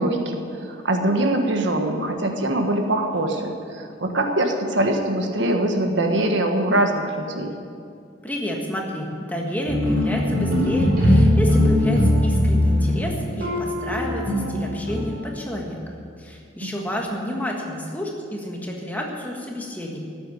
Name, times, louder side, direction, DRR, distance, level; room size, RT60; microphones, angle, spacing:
voice 1, 0.0-7.5, right 1 dB, 70° right, 3 dB, 1.4 m, -23 dB
voice 2, 8.2-15.8 16.2-20.0, equal, 10° left, 0 dB, 1.7 m, -30 dB
sound 1, 9.7-15.2, left 1 dB, 45° right, 4.0 m, -20 dB
14.5 x 7.9 x 9.2 m, 2.3 s
head